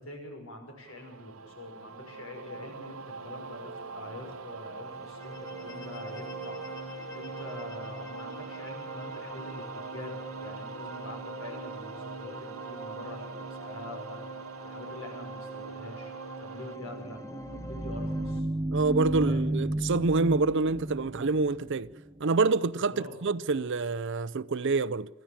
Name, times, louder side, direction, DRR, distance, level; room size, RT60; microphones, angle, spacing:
voice 1, 0.0-6.6 7.1-14.2 14.6-16.1 16.4-17.2 17.5-18.5 19.2-19.4 22.9-23.2, left 1 dB, 80° left, 5.9 m, -44 dB
sound 1, 0.9-16.8, right 4 dB, 80° right, 0.9 m, -43 dB
sound 2, 4.8-18.4, right 1 dB, 15° left, 1.3 m, -44 dB
sound 3, 16.8-22.3, right 1 dB, 15° right, 0.6 m, -33 dB
voice 2, 18.7-21.9 22.2-25.1, right 3 dB, 60° right, 0.6 m, -27 dB
25.0 x 14.5 x 7.4 m
head